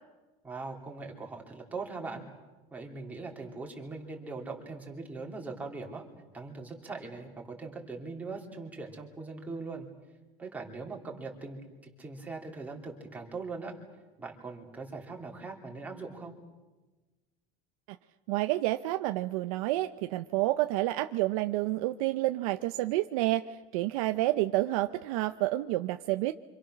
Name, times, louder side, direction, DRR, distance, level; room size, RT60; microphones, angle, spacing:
voice 1, 0.4-2.2 2.7-6.0 6.3-9.9 10.4-13.7 14.2-16.3, right 3 dB, 10° right, 0 dB, 3.1 m, -41 dB
voice 2, 18.3-26.3, right 17 dB, 80° right, 9 dB, 0.8 m, -29 dB
28.0 x 26.0 x 6.4 m, 1.2 s
cardioid pair, 175°, 18 cm